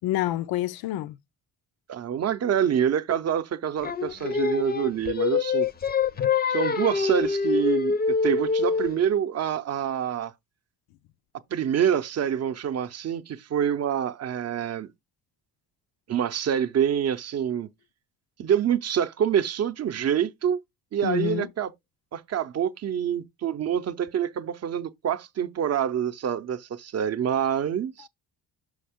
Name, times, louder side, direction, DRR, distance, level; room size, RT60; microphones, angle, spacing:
voice 1, 0.0-1.2 21.0-21.5, left 14 dB, 75° left, 0.5 m, -27 dB
voice 2, 1.9-5.7 6.5-10.3 11.5-14.9 16.1-17.7 18.4-20.6 20.9-21.7 22.1-28.1, right 9 dB, 45° right, 0.6 m, -26 dB
Singing, 3.8-9.0, left 5 dB, 25° left, 0.5 m, -25 dB
6.4 x 4.2 x 3.5 m
cardioid pair, 115°, 37 cm